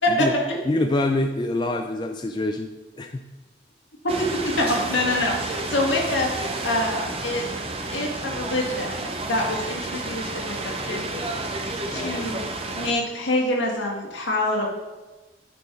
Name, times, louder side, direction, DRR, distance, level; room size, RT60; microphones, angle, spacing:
voice 1, 0.0-0.6 4.2-7.5 7.9-11.4 11.9-12.4 12.7-14.7, left 1 dB, 75° left, -1 dB, 1.8 m, -26 dB
voice 2, 0.7-2.7 3.0-3.2 11.9-12.3, left 2 dB, 25° left, 4 dB, 0.3 m, -25 dB
sound 1, 4.1-12.9, right 2 dB, 30° right, 0.7 m, -31 dB
9.9 x 4.4 x 4.6 m, 1.2 s
head